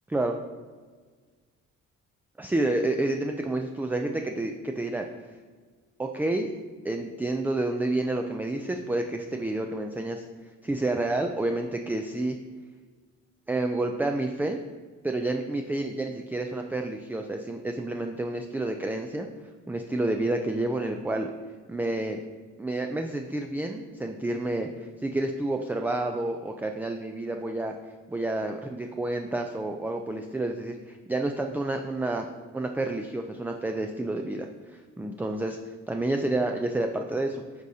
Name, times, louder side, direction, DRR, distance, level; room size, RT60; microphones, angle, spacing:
voice 1, 2.4-5.1 6.0-6.5 6.8-10.2 10.6-12.4 13.5-14.6 15.0-19.3 19.7-21.3 21.7-22.2 22.6-24.7 25.0-27.7 28.1-32.3 32.5-34.5 35.0-35.6 35.9-37.4, right 2 dB, 5° right, 4 dB, 0.3 m, -29 dB
11.0 x 4.0 x 2.7 m, 1.5 s
cardioid pair, 90°, 30 cm